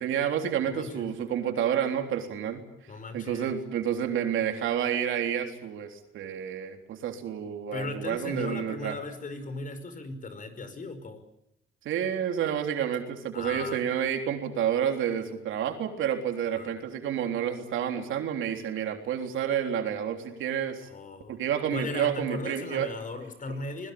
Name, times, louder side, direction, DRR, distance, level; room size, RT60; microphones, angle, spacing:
voice 1, 0.0-2.6 3.1-9.0 11.9-20.9 21.3-22.9, right 9 dB, 80° right, 5 dB, 3.6 m, -29 dB
voice 2, 0.6-1.1 2.9-3.5 7.7-11.2 13.3-13.8 16.5-16.7 20.8-21.4 21.7-23.9, left 3 dB, 40° left, 10 dB, 5.5 m, -37 dB
26.5 x 21.0 x 8.7 m, 0.79 s
cardioid pair, 90°, 20 cm